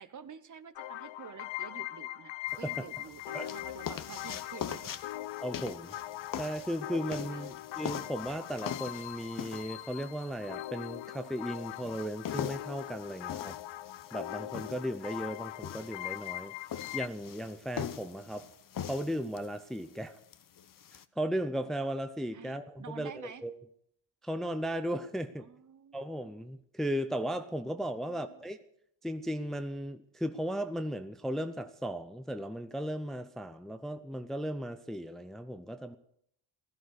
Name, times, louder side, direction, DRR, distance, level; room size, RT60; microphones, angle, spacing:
voice 1, 0.0-5.0 7.3-7.6 22.3-23.4 25.4-26.0 28.0-28.4, right 7 dB, 40° right, 12 dB, 1.1 m, -49 dB
sound 1, 0.8-17.1, left 15 dB, 65° left, 0.6 m, -41 dB
sound 2, 2.5-21.0, left 9 dB, 40° left, 0.9 m, -43 dB
voice 2, 5.4-6.0 6.4-13.6 14.1-16.5 16.9-18.5 18.8-20.2 21.2-23.6 24.2-25.5 25.9-28.6 29.0-36.0, equal, ahead, 9 dB, 0.7 m, -36 dB
15.5 x 13.5 x 6.6 m, 0.69 s
cardioid pair, 115°, 49 cm